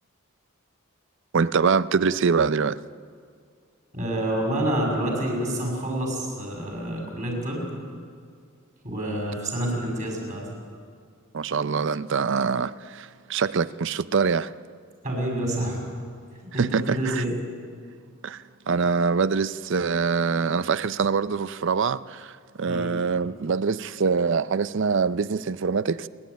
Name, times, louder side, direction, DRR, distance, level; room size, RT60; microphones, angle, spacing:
voice 1, 1.3-2.8 11.3-14.5 16.6-17.2 18.2-22.3 22.6-26.1, right 5 dB, 55° right, 0.5 m, -24 dB
voice 2, 3.9-7.7 8.8-10.4 15.0-15.8 16.5-17.3 22.7-22.9, right 1 dB, 35° right, 6.2 m, -28 dB
29.0 x 11.5 x 9.2 m
head